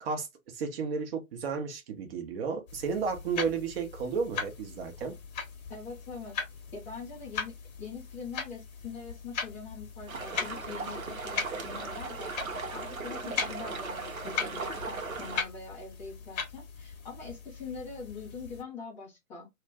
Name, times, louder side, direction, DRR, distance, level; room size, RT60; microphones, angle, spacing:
voice 1, 0.0-5.1, right 5 dB, 45° right, 0.9 m, -33 dB
sound 1, 2.7-18.6, left 6 dB, 30° left, 0.8 m, -39 dB
voice 2, 5.7-6.4 6.7-12.3 12.7-19.5, left 5 dB, 5° left, 0.4 m, -43 dB
sound 2, 10.1-15.4, right 4 dB, 85° right, 0.8 m, -37 dB
2.4 x 2.1 x 3.4 m
figure-of-eight pair, 130°, 41 cm